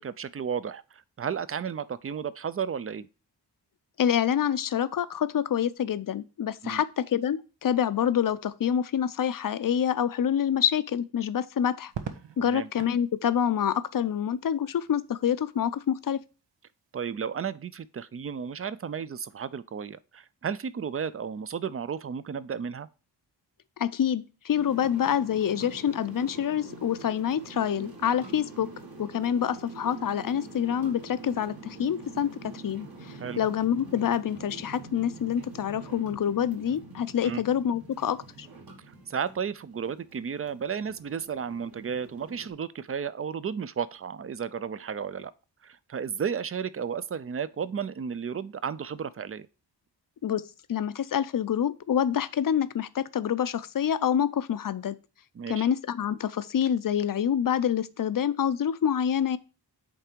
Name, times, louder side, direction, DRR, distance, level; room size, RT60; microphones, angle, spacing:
voice 1, 0.0-3.1 6.6-6.8 12.4-12.7 16.9-22.9 33.2-33.4 37.2-37.4 38.9-45.3 45.6-49.5 55.4-55.7, right 7 dB, 35° right, 0.4 m, -33 dB
voice 2, 4.0-11.9 12.4-16.2 23.8-28.7 29.0-38.5 50.2-55.0 55.5-59.4, left 9 dB, 50° left, 0.5 m, -27 dB
Crackle, 11.9-13.0 14.6-15.2, right 7 dB, 85° right, 0.9 m, -40 dB
sound 1, 24.5-42.5, right 3 dB, 55° right, 2.0 m, -45 dB
8.5 x 3.4 x 4.4 m
wide cardioid pair, 105°, 42 cm